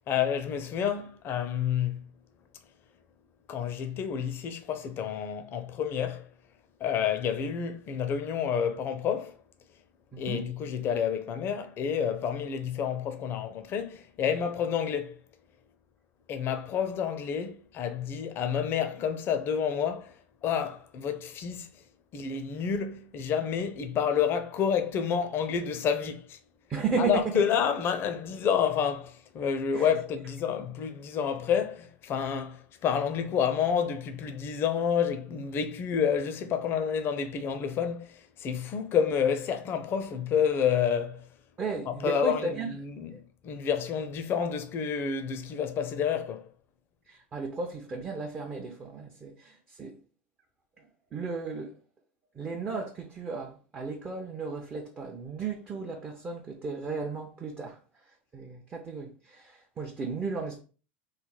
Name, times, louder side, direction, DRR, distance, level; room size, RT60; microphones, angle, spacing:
voice 1, 0.0-2.0 3.5-6.3 6.8-9.4 10.2-15.2 16.3-20.2 20.4-21.7 22.1-26.4 27.0-41.3 41.9-46.5, left 7 dB, 40° left, 0.5 m, -29 dB
voice 2, 10.1-10.4 26.7-27.2 29.7-29.9 41.6-42.8 47.1-49.9 50.8-50.9 51.1-51.7 52.3-57.8 58.3-60.6, right 4 dB, 25° right, 0.6 m, -34 dB
3.2 x 2.0 x 3.9 m
hypercardioid pair, 100°, 6 cm